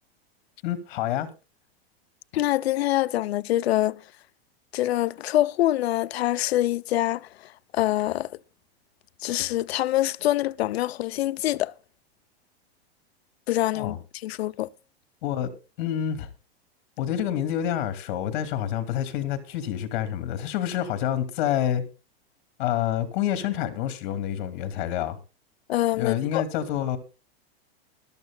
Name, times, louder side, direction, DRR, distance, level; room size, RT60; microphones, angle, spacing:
voice 1, 0.6-1.3 13.7-14.0 15.2-15.5 15.8-16.3 17.0-21.8 22.6-25.2 26.0-27.0, left 10 dB, 50° left, 2.7 m, -27 dB
voice 2, 2.3-4.0 4.7-8.4 9.2-11.7 13.5-14.0 14.2-14.7 25.7-26.5, left 14 dB, 75° left, 0.7 m, -25 dB
21.0 x 13.0 x 2.3 m
supercardioid pair, 160°, 31 cm